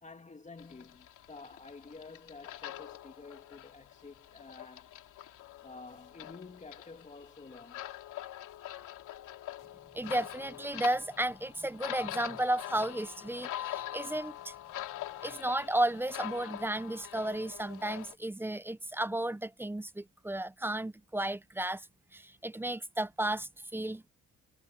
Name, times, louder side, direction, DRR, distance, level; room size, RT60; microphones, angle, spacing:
voice 1, 0.0-4.9 5.6-7.9, left 3 dB, 25° left, 2.7 m, -50 dB
sound 1, 0.6-18.1, left 13 dB, 85° left, 2.8 m, -44 dB
voice 2, 9.9-14.5 15.2-21.9 22.1-24.1, right 1 dB, 5° right, 0.7 m, -33 dB
cardioid pair, 90°, 30 cm